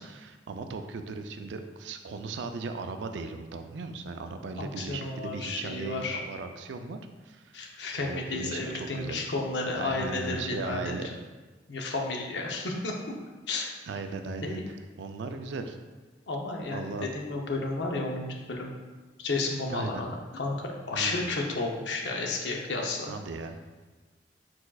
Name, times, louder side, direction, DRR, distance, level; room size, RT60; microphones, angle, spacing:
voice 1, 0.0-7.0 7.3-7.6 8.0-9.2 9.8-11.1 13.9-14.6 15.0-15.8 16.7-17.1 19.7-20.0 20.9-21.3 23.1-23.6, right 4 dB, 85° right, 7 dB, 0.4 m, -37 dB
voice 2, 4.6-6.2 7.5-10.9 11.7-13.2 13.5-13.7 14.4-14.6 16.3-18.7 19.2-20.1 20.3-23.1, left 3 dB, 80° left, 1 dB, 0.7 m, -32 dB
4.6 x 4.2 x 2.3 m, 1.3 s
head